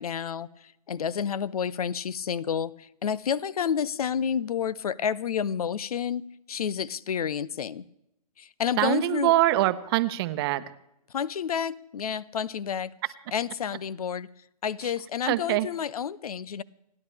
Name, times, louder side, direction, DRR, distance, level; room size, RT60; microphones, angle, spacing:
voice 1, 0.0-6.2 6.5-7.8 8.4-9.3 11.1-12.9 13.3-14.3 14.6-16.6, left 7 dB, 75° left, 22 dB, 0.7 m, -30 dB
voice 2, 8.8-10.6 14.8-14.9 15.2-15.7, right 15 dB, 40° right, 12 dB, 0.9 m, -24 dB
30.0 x 10.5 x 3.4 m, 0.81 s
hypercardioid pair, 130°, 19 cm